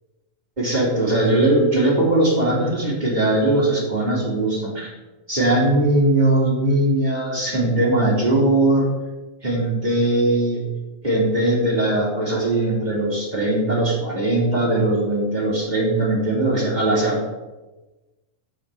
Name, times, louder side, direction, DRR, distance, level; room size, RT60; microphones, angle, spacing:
voice 1, 0.6-4.9 5.3-8.9 9.4-10.6 11.0-17.2, right 1 dB, 15° right, -3 dB, 2.5 m, -20 dB
13.0 x 4.8 x 8.2 m, 1.1 s
omnidirectional pair, 4.0 m